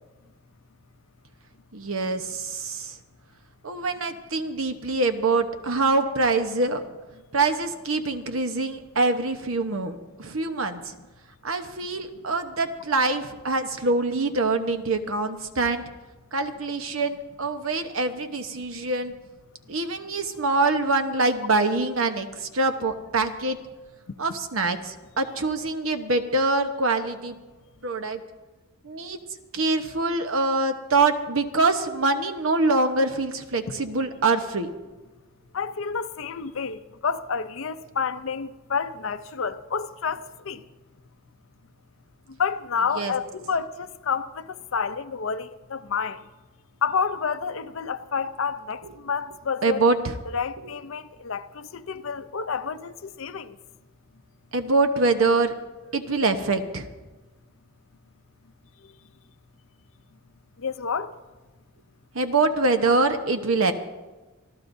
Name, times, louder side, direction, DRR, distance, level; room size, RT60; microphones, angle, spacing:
voice 1, 1.7-3.0 3.6-6.8 7.3-10.9 11.4-15.8 16.3-19.1 19.7-23.6 24.2-27.4 27.8-28.2 28.8-29.2 29.5-34.7 42.9-43.1 48.8-48.9 49.6-50.1 50.6-50.7 54.5-55.5 55.9-56.9 62.1-63.7, right 3 dB, 70° right, 1.1 m, -24 dB
voice 2, 35.5-40.6 42.4-46.2 46.8-49.8 50.3-53.5 60.6-61.1, left 6 dB, 65° left, 0.6 m, -29 dB
27.5 x 13.5 x 2.7 m
head